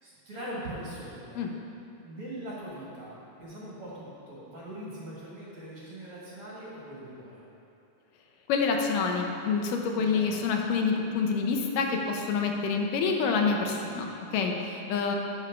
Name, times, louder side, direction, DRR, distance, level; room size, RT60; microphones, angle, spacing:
voice 1, 0.0-1.4 2.0-7.4 9.9-10.3, right 1 dB, 45° right, -7 dB, 2.4 m, -41 dB
voice 2, 8.5-15.2, left 5 dB, 80° left, 2 dB, 2.3 m, -27 dB
8.3 x 6.6 x 5.3 m, 2.7 s
omnidirectional pair, 3.8 m